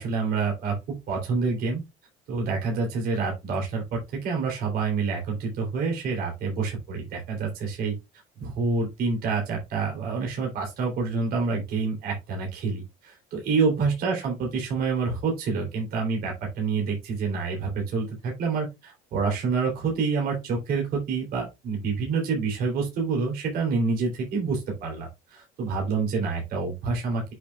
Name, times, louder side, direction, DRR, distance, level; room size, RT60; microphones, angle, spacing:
voice 1, 0.0-1.8 2.3-7.9 8.4-27.2, right 4 dB, 60° right, 0 dB, 3.1 m, -27 dB
8.0 x 5.3 x 2.3 m, 0.22 s
supercardioid pair, 95°, 18 cm